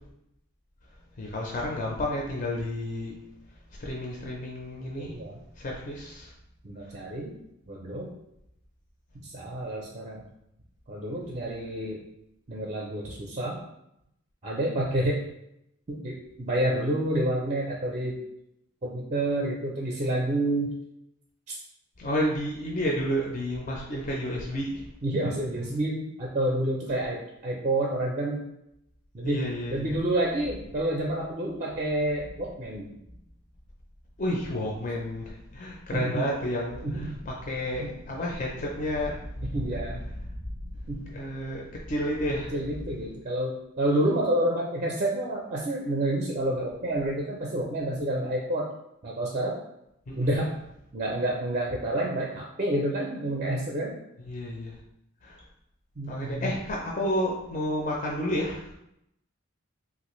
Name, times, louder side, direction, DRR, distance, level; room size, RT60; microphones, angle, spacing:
voice 1, 1.2-3.1 3.8-5.1 5.6-6.3 22.0-24.8 29.2-30.0 34.2-39.6 40.2-40.3 40.6-40.7 41.1-42.5 50.1-50.3 54.3-54.7 55.2-55.3 56.1-58.7, equal, 40° left, -2 dB, 0.4 m, -31 dB
voice 2, 5.0-5.4 6.6-7.3 7.7-8.1 9.1-10.3 10.9-12.0 12.5-13.6 14.4-15.2 15.9-18.2 18.8-20.8 21.5-21.6 25.0-28.5 29.1-32.9 35.9-36.3 36.8-37.2 37.8-37.9 39.5-40.0 40.9-41.2 42.5-48.7 49.0-49.6 50.2-50.5 50.9-53.9 56.0-56.5, right 1 dB, 35° right, -2 dB, 0.4 m, -29 dB
3.3 x 2.5 x 3.0 m, 0.80 s
head